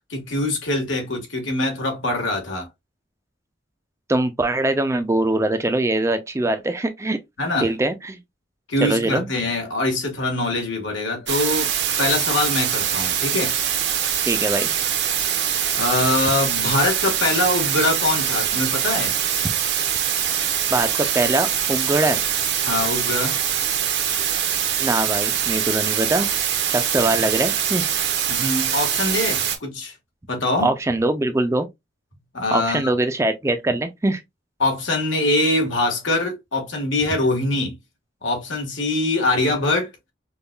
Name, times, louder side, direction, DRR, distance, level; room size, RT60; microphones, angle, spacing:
voice 1, 0.1-2.7 7.4-7.7 8.7-11.7 12.0-13.5 15.8-19.1 22.6-23.4 28.3-29.9 30.3-30.7 32.3-32.9 34.6-37.7 38.2-39.9, left 2 dB, 90° left, 1.5 m, -23 dB
voice 2, 4.1-7.2 7.6-8.2 8.8-9.3 14.3-14.7 20.7-22.2 24.8-26.3 26.7-27.9 30.6-31.7 32.5-34.2, right 2 dB, 15° right, 0.4 m, -22 dB
sound 1, 11.3-29.6, right 9 dB, 60° right, 0.7 m, -23 dB
5.3 x 2.3 x 2.2 m
head